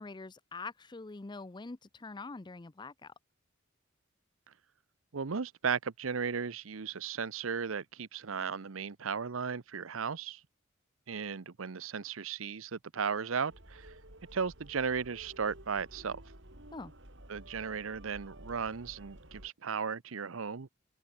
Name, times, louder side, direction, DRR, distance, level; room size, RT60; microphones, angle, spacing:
voice 1, 0.0-3.1 16.7-16.9, left 3 dB, 20° left, 0.5 m, -44 dB
voice 2, 5.1-10.4 11.1-13.9 14.3-16.2 17.3-20.7, right 6 dB, 90° right, 0.8 m, -35 dB
sound 1, 13.5-19.5, right 1 dB, 65° right, 7.7 m, -53 dB
open air
head